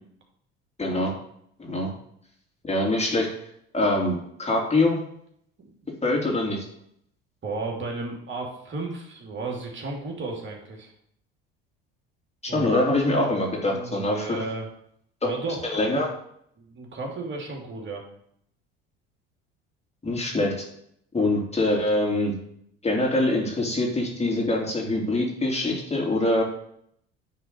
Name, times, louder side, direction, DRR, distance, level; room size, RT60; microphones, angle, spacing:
voice 1, 0.8-1.1 1.6-1.9 2.6-3.3 3.7-5.0 6.0-6.6 12.4-14.4 15.6-16.1 20.0-20.5 21.1-22.3 22.8-26.4, left 2 dB, 20° left, -1 dB, 3.0 m, -24 dB
voice 2, 5.6-5.9 7.4-10.9 12.5-12.7 13.6-14.7 15.2-15.6 16.6-18.0, right 3 dB, 40° right, 0 dB, 2.7 m, -34 dB
9.5 x 4.3 x 6.6 m, 0.70 s
hypercardioid pair, 70°, 31 cm